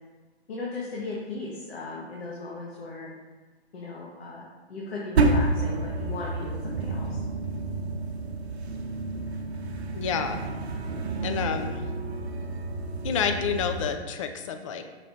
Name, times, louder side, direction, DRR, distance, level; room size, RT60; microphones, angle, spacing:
voice 1, 0.5-3.1 3.7-7.2, left 3 dB, 65° left, -4 dB, 1.5 m, -37 dB
sound 1, 5.2-14.0, right 2 dB, 70° right, 1.0 m, -29 dB
voice 2, 9.9-10.4 11.2-11.8 13.0-14.9, left 7 dB, 30° left, 7 dB, 0.4 m, -29 dB
5.9 x 4.8 x 4.1 m, 1.3 s
hypercardioid pair, 140°, 33 cm